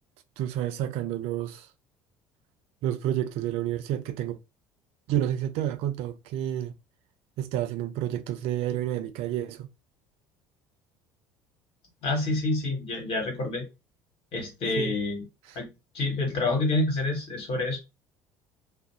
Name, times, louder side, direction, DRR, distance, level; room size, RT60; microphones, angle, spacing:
voice 1, 0.4-1.7 2.8-4.4 5.1-6.7 7.4-9.7 14.8-14.9, right 11 dB, 60° right, 0.4 m, -29 dB
voice 2, 12.0-13.7 14.3-15.3 15.5-15.7 15.9-17.8, left 2 dB, 55° left, 1.3 m, -27 dB
2.4 x 2.0 x 2.8 m
hypercardioid pair, 65°, 11 cm